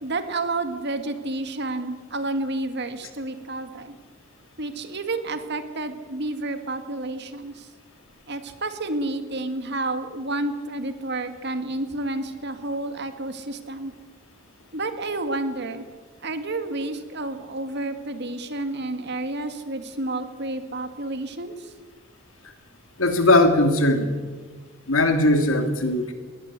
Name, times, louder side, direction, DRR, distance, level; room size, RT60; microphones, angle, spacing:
voice 1, 0.0-4.0 4.6-7.7 8.3-13.9 14.7-15.8 16.2-21.7, right 2 dB, 55° right, 9 dB, 2.1 m, -30 dB
voice 2, 23.0-24.1 24.9-26.1, left 1 dB, 80° left, 7 dB, 2.8 m, -19 dB
21.5 x 18.0 x 8.3 m, 1.4 s
head